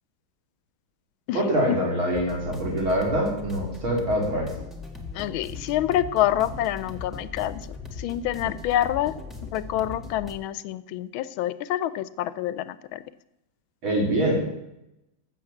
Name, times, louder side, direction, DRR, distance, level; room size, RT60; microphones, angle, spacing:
voice 1, 1.3-4.5 13.8-14.4, equal, 80° right, -2 dB, 4.1 m, -24 dB
minimal-techno, 2.1-10.3, left 4 dB, ahead, 1.2 m, -39 dB
voice 2, 5.1-7.6 8.0-9.1 9.5-13.0, left 12 dB, 85° left, 16 dB, 1.4 m, -27 dB
14.5 x 6.6 x 7.2 m, 0.88 s
omnidirectional pair, 2.2 m